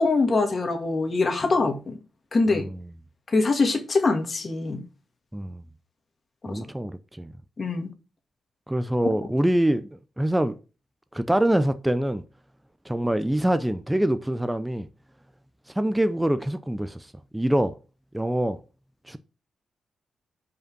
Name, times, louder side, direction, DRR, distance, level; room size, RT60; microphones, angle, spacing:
voice 1, 0.0-2.0 2.3-2.6 3.3-4.8 6.4-6.6 7.6-7.9, left 3 dB, 40° left, 1.9 m, -23 dB
voice 2, 5.3-5.6 6.5-7.3 8.7-10.6 11.1-12.2 12.9-14.9 15.8-17.1 17.3-17.8 18.1-18.6 19.1-19.2, right 1 dB, 10° right, 0.6 m, -25 dB
5.3 x 4.9 x 6.2 m
cardioid pair, 75°, 0 cm